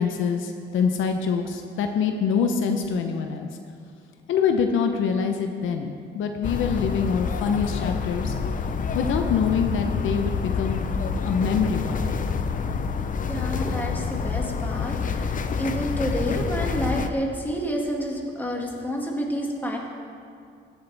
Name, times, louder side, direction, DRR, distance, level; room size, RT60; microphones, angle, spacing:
voice 1, 0.0-3.5 4.3-8.3 8.9-10.9 11.2-12.2, left 6 dB, 80° left, 5 dB, 0.8 m, -25 dB
sound 1, 6.4-17.1, left 5 dB, 40° left, 0.6 m, -27 dB
voice 2, 13.3-19.8, equal, 10° left, -1 dB, 2.1 m, -29 dB
16.5 x 7.9 x 3.5 m, 2.4 s
cardioid pair, 90°, 20 cm